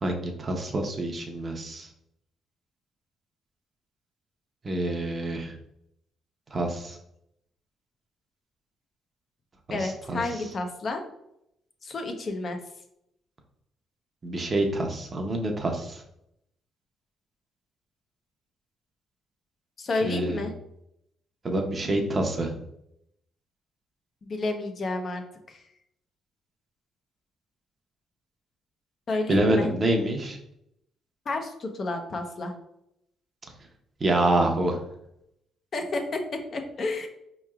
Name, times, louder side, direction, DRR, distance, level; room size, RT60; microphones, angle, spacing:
voice 1, 0.0-1.9 4.6-5.5 6.5-7.0 9.8-10.2 14.2-16.0 20.0-20.4 21.4-22.5 29.3-30.4 34.0-34.8, right 1 dB, 35° right, 3 dB, 0.7 m, -26 dB
voice 2, 9.7-11.0 11.8-12.6 19.8-20.5 24.2-25.6 29.1-29.7 31.3-32.5 35.7-37.1, left 2 dB, 50° left, 4 dB, 0.6 m, -30 dB
4.6 x 3.0 x 2.3 m, 0.79 s
cardioid pair, 90°, 0 cm